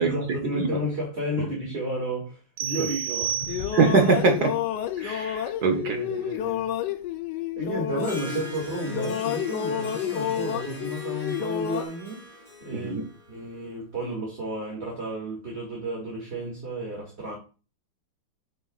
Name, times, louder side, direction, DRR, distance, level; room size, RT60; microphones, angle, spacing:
voice 1, 0.0-3.6 5.7-6.7 7.6-12.3 12.6-12.9 13.3-17.4, right 1 dB, 35° right, 2.5 m, -32 dB
sound 1, 2.6-4.1, right 10 dB, 85° right, 0.8 m, -31 dB
sound 2, 3.2-8.6 8.9-11.8, left 10 dB, 70° left, 1.2 m, -30 dB
voice 2, 3.7-4.5 5.0-6.0 12.7-13.0, right 4 dB, 55° right, 1.5 m, -22 dB
Harp, 7.9-13.6, equal, 25° left, 2.3 m, -41 dB
9.3 x 6.4 x 2.5 m
omnidirectional pair, 2.1 m